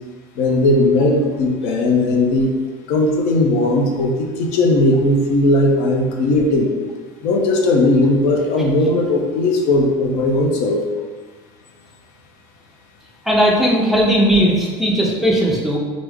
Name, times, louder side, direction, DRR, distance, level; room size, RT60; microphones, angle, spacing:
voice 1, 0.4-2.5 2.9-6.7 7.2-10.8, left 2 dB, 75° left, 1 dB, 0.5 m, -17 dB
voice 2, 13.3-15.8, equal, ahead, -3 dB, 0.5 m, -16 dB
3.3 x 2.0 x 3.4 m, 1.4 s
cardioid pair, 125°, 12 cm